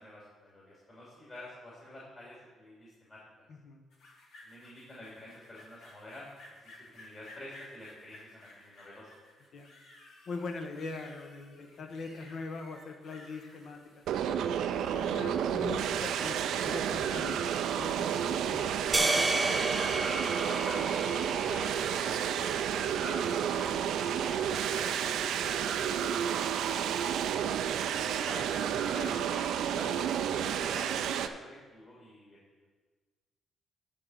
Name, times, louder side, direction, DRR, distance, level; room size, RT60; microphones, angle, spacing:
voice 1, 0.0-3.2 4.4-6.3 6.6-9.1 20.4-25.5 26.3-27.5 27.7-30.0 30.4-32.4, left 1 dB, 30° left, -6 dB, 2.5 m, -48 dB
voice 2, 3.5-3.8 9.5-9.8 10.3-14.0 14.7-19.3 25.6-26.0, left 3 dB, 60° left, 5 dB, 1.1 m, -42 dB
sound 1, 3.9-16.1, left 2 dB, 80° left, 2.0 m, -55 dB
sound 2, 14.1-31.3, right 9 dB, 80° right, 0.4 m, -31 dB
sound 3, 18.9-23.3, right 2 dB, 20° right, 0.9 m, -32 dB
10.5 x 3.8 x 7.1 m, 1.4 s
cardioid pair, 90°, 0 cm